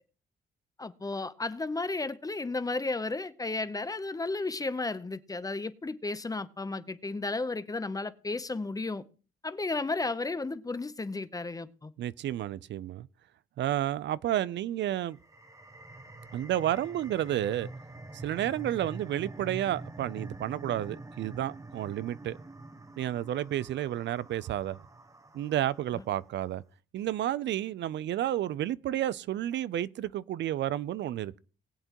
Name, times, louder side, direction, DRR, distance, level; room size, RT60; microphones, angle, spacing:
voice 1, 0.8-9.0 9.4-11.9 25.9-26.0, left 3 dB, 20° left, 0.7 m, -33 dB
voice 2, 12.0-13.1 13.6-15.2 16.3-17.7 18.2-22.4 23.0-24.8 25.3-26.6 26.9-31.4, right 12 dB, 65° right, 0.5 m, -31 dB
sound 1, 15.1-26.3, right 2 dB, 15° right, 1.0 m, -46 dB
20.5 x 8.0 x 3.0 m
cardioid pair, 90°, 20 cm